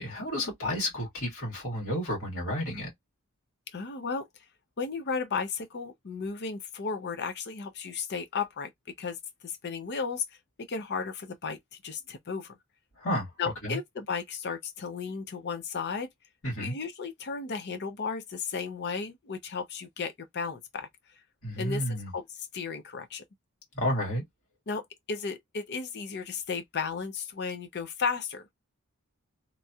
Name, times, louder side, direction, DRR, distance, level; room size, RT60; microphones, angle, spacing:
voice 1, 0.0-2.9 13.0-13.3 13.6-13.8 16.4-16.7 21.4-22.1 23.7-24.2, equal, 65° left, 1.8 m, -31 dB
voice 2, 3.7-4.3 4.8-8.7 9.0-9.2 9.4-10.4 10.7-12.6 13.4-16.1 16.6-20.9 21.6-23.2 24.7-28.5, left 5 dB, 50° left, 0.6 m, -34 dB
3.0 x 2.7 x 2.3 m
head